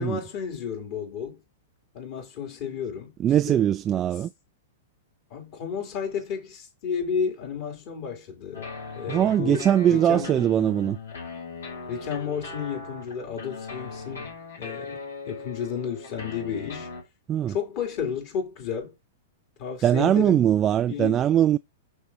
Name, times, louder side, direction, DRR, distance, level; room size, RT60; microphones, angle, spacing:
voice 1, 0.0-1.4 1.9-3.1 3.5-3.7 5.3-8.7 9.0-10.3 11.9-14.3 14.6-16.9 17.5-18.9 19.6-20.5 20.9-21.2, left 7 dB, 45° left, 3.6 m, -32 dB
voice 2, 3.2-4.3 9.1-11.0 17.3-17.5 19.8-21.6, right 10 dB, 25° right, 0.3 m, -21 dB
sound 1, 8.5-17.0, left 4 dB, 70° left, 4.3 m, -39 dB
12.5 x 4.2 x 2.9 m
figure-of-eight pair, 105°, 0 cm